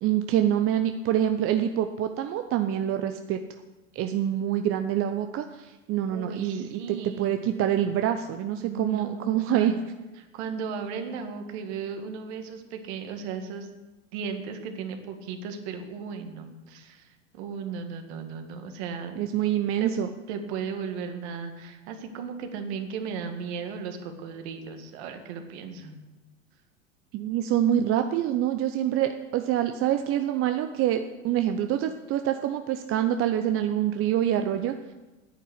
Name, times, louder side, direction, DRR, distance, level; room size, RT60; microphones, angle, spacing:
voice 1, 0.0-3.4 3.9-9.7 19.2-20.1 27.1-34.8, right 11 dB, 35° right, 7 dB, 0.7 m, -26 dB
voice 2, 6.1-7.3 8.6-9.8 10.2-13.7 14.1-19.1 19.8-19.9 20.3-26.0, right 6 dB, 55° right, 6 dB, 1.9 m, -36 dB
10.0 x 8.3 x 8.1 m, 1.1 s
hypercardioid pair, 90°, 39 cm